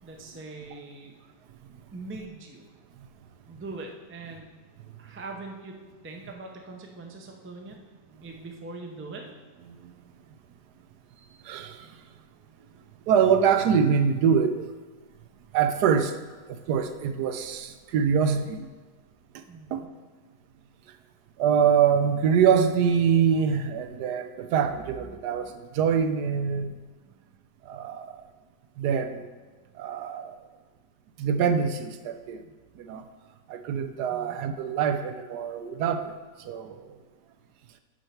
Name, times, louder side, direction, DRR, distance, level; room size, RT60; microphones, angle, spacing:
voice 1, 0.0-1.1 1.9-2.7 3.5-4.5 5.0-7.8 8.2-9.3 19.5-19.7 34.1-34.4, right 3 dB, 15° right, 1 dB, 0.4 m, -41 dB
voice 2, 11.4-11.8 13.1-14.7 15.5-16.1 16.5-18.7 19.7-19.8 21.4-26.7 27.7-28.1 28.8-29.3 29.8-30.4 31.2-32.4 32.8-33.0 33.5-36.1 36.5-36.8, right 7 dB, 75° right, 9 dB, 1.1 m, -24 dB
8.9 x 4.5 x 5.8 m, 1.3 s
omnidirectional pair, 1.8 m